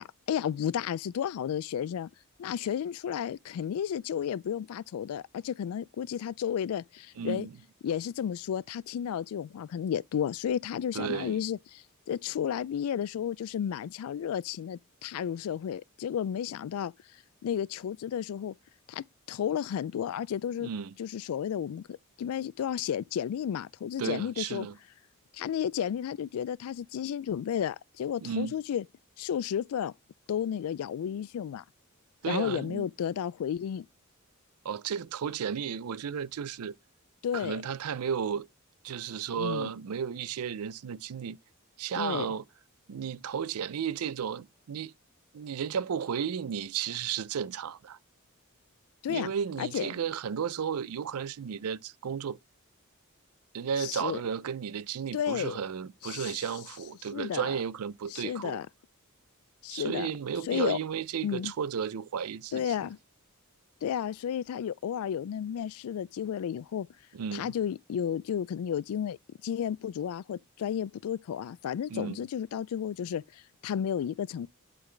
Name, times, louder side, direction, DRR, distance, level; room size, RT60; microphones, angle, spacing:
voice 1, 0.0-2.1 2.4-7.5 7.8-16.9 17.4-18.5 18.9-20.7 21.0-24.7 25.3-28.8 29.2-29.9 30.3-31.6 32.3-33.9 37.2-37.6 39.3-39.7 41.9-42.3 49.0-49.3 49.6-49.9 53.8-54.2 55.1-55.6 56.0-56.4 57.1-57.5 58.1-58.7 59.6-60.1 60.5-60.8 61.2-61.5 62.5-63.0 63.8-66.9 67.3-69.2 69.4-74.5, left 9 dB, 75° left, 0.3 m, -32 dB
voice 2, 7.2-7.5 10.9-11.4 20.6-20.9 24.0-24.8 28.2-28.6 32.2-32.9 34.6-36.7 37.3-38.5 38.8-41.4 41.8-42.4 42.9-44.9 45.3-48.0 49.1-52.4 53.5-58.6 59.7-62.7 67.1-67.5 71.9-72.2, right 7 dB, 85° right, 0.4 m, -33 dB
11.0 x 3.9 x 3.2 m
head